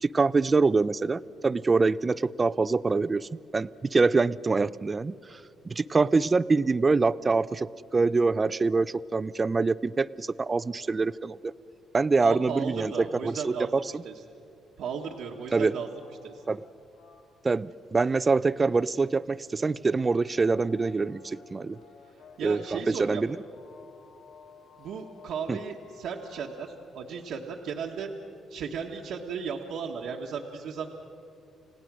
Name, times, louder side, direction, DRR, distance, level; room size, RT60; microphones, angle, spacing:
voice 1, 0.0-5.4 5.7-11.5 11.9-14.0 15.5-15.7 16.5-16.6 17.4-21.8 22.4-23.4 25.5-25.6, right 4 dB, 30° right, 17 dB, 0.4 m, -25 dB
voice 2, 12.2-13.7 14.0-14.2 14.8-15.9 16.2-16.4 22.4-23.2 24.8-28.1 28.5-30.9, right 6 dB, 75° right, 0 dB, 1.3 m, -35 dB
sound 1, 15.0-26.9, left 5 dB, 75° left, 1.5 m, -55 dB
29.5 x 17.0 x 6.1 m, 2.7 s
cardioid pair, 90°, 0 cm